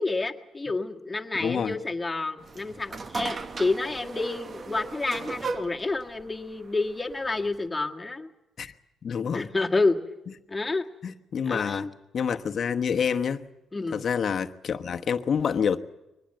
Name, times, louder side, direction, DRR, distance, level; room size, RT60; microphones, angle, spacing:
voice 1, 0.0-8.3 9.3-10.0 10.5-10.9 11.4-11.9 13.7-14.0, left 3 dB, 20° left, 3 dB, 1.8 m, -29 dB
voice 2, 1.4-1.8 8.6-8.7 9.0-9.5 11.0-11.9 12.1-13.5 13.9-15.8, left 7 dB, 55° left, 6 dB, 1.1 m, -27 dB
sound 1, 2.4-7.7, right 4 dB, 40° right, 1.2 m, -37 dB
23.0 x 19.5 x 7.8 m, 0.94 s
cardioid pair, 90°, 0 cm